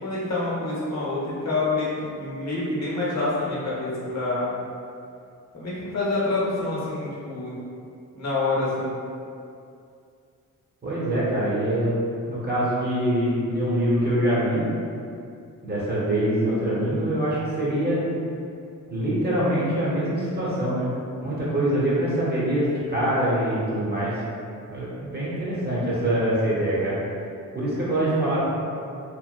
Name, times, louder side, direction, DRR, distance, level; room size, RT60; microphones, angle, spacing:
voice 1, 0.0-1.9 2.2-4.6 5.5-7.6 8.1-8.9, left 2 dB, 55° left, -7 dB, 0.9 m, -27 dB
voice 2, 10.8-12.0 12.3-14.7 15.6-18.0 18.9-20.9 21.2-24.2 24.7-27.0 27.5-28.5, right 1 dB, 30° right, -8 dB, 0.9 m, -24 dB
3.1 x 2.1 x 2.4 m, 2.5 s
cardioid pair, 85°, 33 cm